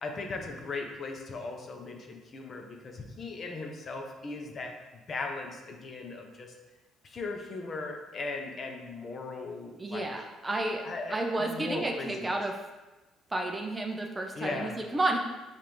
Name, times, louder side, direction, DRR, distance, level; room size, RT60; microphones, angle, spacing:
voice 1, 0.0-4.7 5.1-6.5 7.0-10.1 10.8-12.3 14.4-14.8, left 3 dB, 40° left, 2 dB, 0.5 m, -38 dB
voice 2, 9.8-12.5 13.3-15.2, right 2 dB, 15° right, 2 dB, 0.4 m, -31 dB
5.1 x 2.5 x 2.9 m, 1.1 s
cardioid pair, 115°, 0 cm